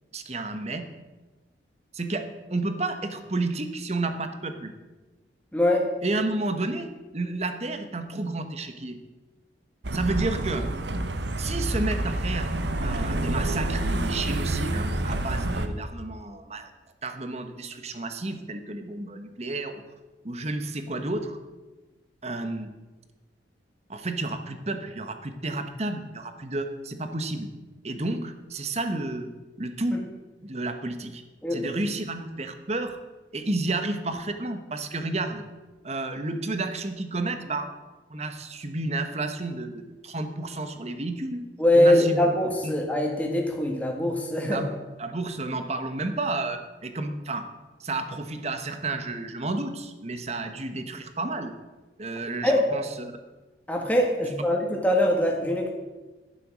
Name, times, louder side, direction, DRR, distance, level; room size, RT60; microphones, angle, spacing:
voice 1, 0.1-0.9 1.9-4.7 6.0-9.0 9.9-10.7 11.4-12.5 12.8-16.7 17.0-19.8 20.2-21.4 22.2-22.7 23.9-27.5 27.8-30.0 30.4-31.2 31.5-33.0 33.3-35.4 35.8-37.8 38.1-41.4 41.7-42.2 42.6-42.7 44.5-44.7 45.0-47.5 47.8-51.5 52.0-53.2, right 2 dB, 35° right, 8 dB, 1.1 m, -31 dB
voice 2, 5.5-5.8 29.9-30.0 31.4-31.7 41.6-44.6 52.4-52.6 53.7-55.7, left 1 dB, 10° left, 0 dB, 1.9 m, -23 dB
sound 1, 9.8-15.7, right 1 dB, 75° right, 1.0 m, -28 dB
11.5 x 10.5 x 6.2 m, 1.2 s
head